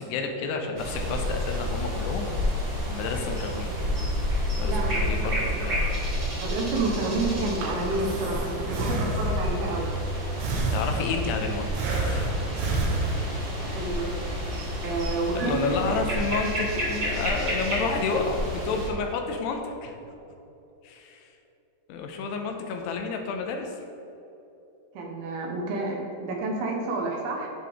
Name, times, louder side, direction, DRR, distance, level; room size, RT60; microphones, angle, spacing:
voice 1, 0.0-2.3 2.9-3.7 4.6-5.9 10.7-12.4 15.3-19.9 20.8-21.3 21.9-23.7, left 4 dB, 80° left, 3 dB, 2.7 m, -30 dB
sound 1, 0.8-18.9, equal, 40° right, 1.6 m, -30 dB
voice 2, 4.6-5.1 6.4-9.9 12.8-12.9 13.2-13.3 13.7-14.1 14.8-15.8 24.9-27.5, right 3 dB, 70° right, 0 dB, 2.8 m, -29 dB
Breathing, 7.6-9.6 10.4-11.3 11.7-13.6, right 3 dB, 90° right, 3.7 m, -30 dB
10.5 x 7.4 x 3.6 m, 2.9 s
omnidirectional pair, 5.2 m